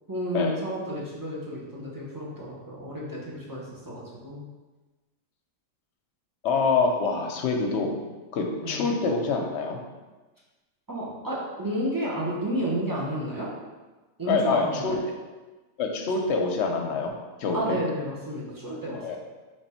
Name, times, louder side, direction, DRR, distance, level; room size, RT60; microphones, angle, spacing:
voice 1, 0.1-4.5 8.6-8.9 10.9-13.5 14.2-15.0 17.5-19.2, right 1 dB, 20° right, -6 dB, 0.7 m, -31 dB
voice 2, 6.4-8.0 8.3-9.8 14.3-15.0 15.8-17.1 17.4-17.8 19.0-19.2, left 4 dB, 65° left, 2 dB, 0.9 m, -25 dB
3.3 x 3.2 x 4.2 m, 1.2 s
omnidirectional pair, 1.4 m